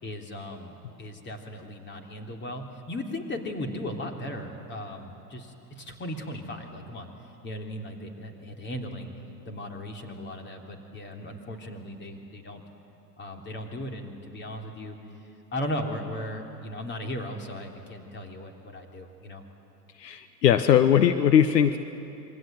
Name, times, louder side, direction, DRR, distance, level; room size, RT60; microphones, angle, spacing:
voice 1, 0.0-0.7 1.0-7.1 7.4-9.1 9.5-12.6 13.2-15.0 15.5-19.4, left 1 dB, 20° left, 3 dB, 3.5 m, -37 dB
voice 2, 20.0-21.8, left 9 dB, 70° left, 10 dB, 1.3 m, -20 dB
27.0 x 23.5 x 9.2 m, 2.8 s
hypercardioid pair, 100°, 50 cm